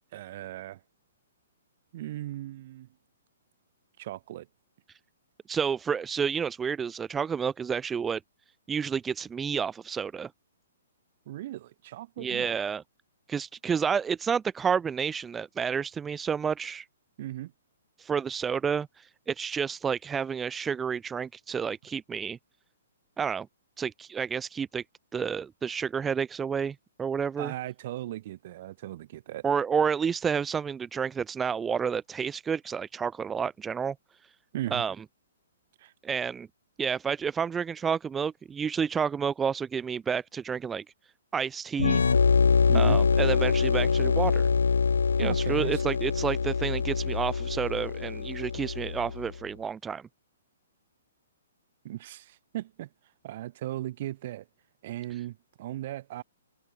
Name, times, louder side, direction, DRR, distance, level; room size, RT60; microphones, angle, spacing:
voice 1, 0.1-0.8 1.9-2.9 4.0-4.5 11.3-12.6 17.2-17.5 27.4-29.5 34.5-34.8 35.8-35.9 42.7-43.0 45.2-45.8 51.8-52.9 53.2-54.5 54.8-56.2, right 14 dB, 50° right, 7.1 m, -37 dB
voice 2, 5.5-8.2 8.7-10.3 12.2-12.8 13.3-16.9 18.0-22.4 23.2-23.5 23.8-24.8 25.1-27.5 29.4-33.9 34.7-34.9 36.0-36.5 36.8-40.8 41.3-42.0 42.7-44.5 45.2-50.0, right 6 dB, 15° right, 0.6 m, -30 dB
sound 1, 41.8-49.3, left 5 dB, 80° left, 0.5 m, -24 dB
hypercardioid pair, 130°, 0 cm